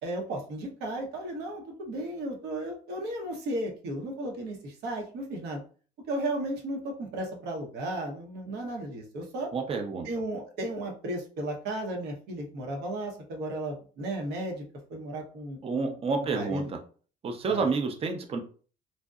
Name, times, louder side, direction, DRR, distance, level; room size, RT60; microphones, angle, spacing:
voice 1, 0.0-5.6 6.1-9.5 10.0-14.6 14.9-16.6 17.5-17.7, right 1 dB, 75° right, 1 dB, 0.8 m, -34 dB
voice 2, 9.5-10.1 15.6-16.6 17.2-18.4, right 4 dB, 35° right, 4 dB, 0.5 m, -29 dB
2.6 x 2.0 x 2.4 m, 0.40 s
cardioid pair, 110°, 17 cm